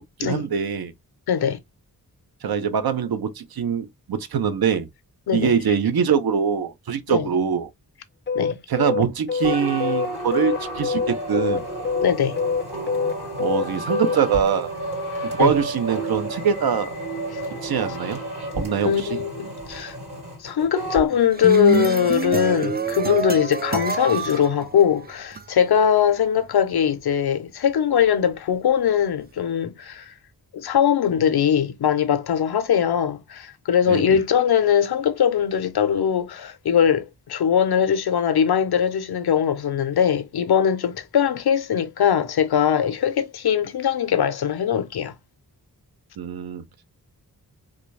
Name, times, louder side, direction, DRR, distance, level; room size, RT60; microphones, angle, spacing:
voice 1, 0.2-0.9 2.4-4.9 5.3-7.7 8.7-11.6 13.4-14.7 15.3-17.0 17.6-18.2 18.6-19.2 33.9-34.2 46.2-46.6, right 7 dB, 70° right, 0.7 m, -23 dB
voice 2, 1.3-1.6 5.3-5.5 7.1-7.3 8.3-8.6 12.0-12.4 15.4-15.5 18.8-20.0 20.4-30.1 30.5-45.1, left 8 dB, 75° left, 0.7 m, -21 dB
sound 1, 8.3-14.4, left 5 dB, 30° left, 0.5 m, -25 dB
sound 2, 9.4-21.1, right 1 dB, 85° right, 2.6 m, -31 dB
sound 3, 21.1-25.4, right 5 dB, 25° right, 0.4 m, -26 dB
3.8 x 2.3 x 3.1 m
cardioid pair, 60°, 38 cm